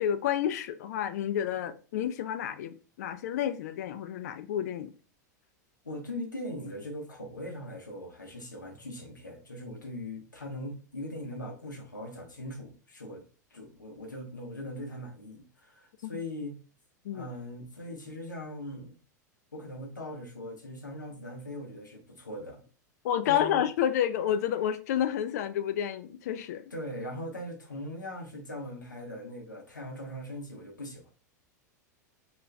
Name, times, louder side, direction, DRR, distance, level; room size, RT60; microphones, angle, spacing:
voice 1, 0.0-4.9 16.0-16.1 17.0-17.3 23.0-26.6, left 10 dB, 60° left, 0.4 m, -30 dB
voice 2, 5.8-13.2 13.5-16.6 17.1-19.0 19.5-22.6 23.2-23.6 26.7-31.1, left 1 dB, 90° left, 0.8 m, -40 dB
2.4 x 2.3 x 3.2 m
figure-of-eight pair, 90°, 10 cm